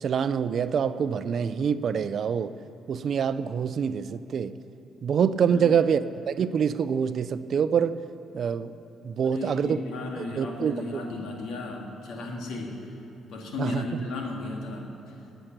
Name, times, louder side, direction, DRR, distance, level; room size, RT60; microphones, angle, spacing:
voice 1, 0.0-2.5 2.9-4.5 5.0-8.0 8.3-8.7 9.0-9.8 10.2-11.0 13.6-13.8, right 7 dB, 60° right, 13 dB, 0.5 m, -26 dB
voice 2, 9.2-13.0 13.3-14.9, left 3 dB, 85° left, 1 dB, 2.1 m, -35 dB
19.0 x 8.0 x 6.0 m, 2.9 s
cardioid pair, 90°, 0 cm